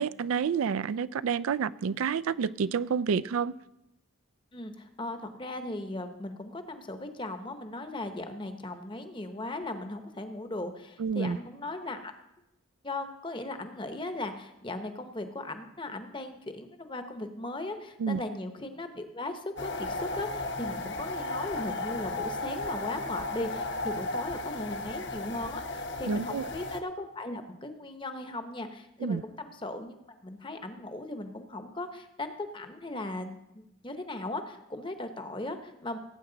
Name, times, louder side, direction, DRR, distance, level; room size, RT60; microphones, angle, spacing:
voice 1, 0.0-3.5 11.0-11.4 18.0-18.2 26.1-26.5 29.0-29.2, right 6 dB, 80° right, 0.4 m, -29 dB
voice 2, 4.5-12.1 12.8-30.0 30.2-36.0, left 2 dB, 25° left, 0.9 m, -38 dB
sound 1, 19.6-26.8, left 2 dB, 55° left, 1.0 m, -35 dB
18.5 x 8.7 x 3.9 m
head